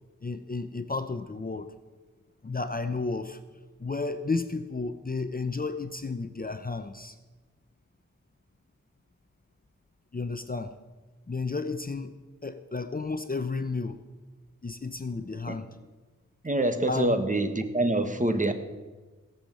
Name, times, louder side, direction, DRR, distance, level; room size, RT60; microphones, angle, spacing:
voice 1, 0.2-1.7 2.4-3.4 3.8-7.2 10.1-10.7 11.3-12.1 12.4-14.0 14.6-15.7 16.9-17.2, left 3 dB, 30° left, 10 dB, 0.7 m, -32 dB
voice 2, 16.4-18.5, right 1 dB, 25° right, 8 dB, 1.4 m, -25 dB
17.5 x 7.2 x 7.4 m, 1.3 s
wide cardioid pair, 80°, 30 cm